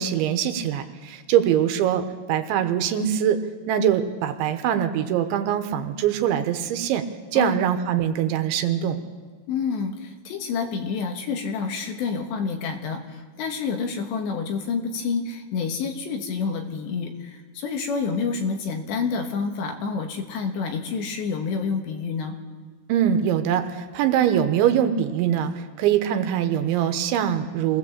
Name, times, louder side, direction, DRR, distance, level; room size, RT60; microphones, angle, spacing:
voice 1, 0.0-3.4 3.7-7.0 7.3-9.0 22.9-25.5 25.8-27.8, right 10 dB, 75° right, 8 dB, 3.2 m, -23 dB
voice 2, 9.5-22.4, left 5 dB, 70° left, 4 dB, 3.5 m, -28 dB
24.0 x 18.0 x 7.2 m, 1.4 s
omnidirectional pair, 5.5 m